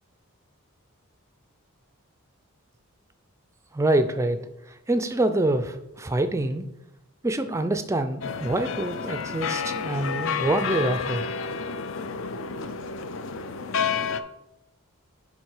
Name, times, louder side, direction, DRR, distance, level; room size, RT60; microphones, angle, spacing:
voice 1, 3.7-4.4 4.9-6.7 7.2-11.2, right 2 dB, 15° right, 10 dB, 0.4 m, -25 dB
sound 1, 8.2-14.2, left 6 dB, 60° left, 0.4 m, -30 dB
9.7 x 3.6 x 4.8 m, 0.88 s
head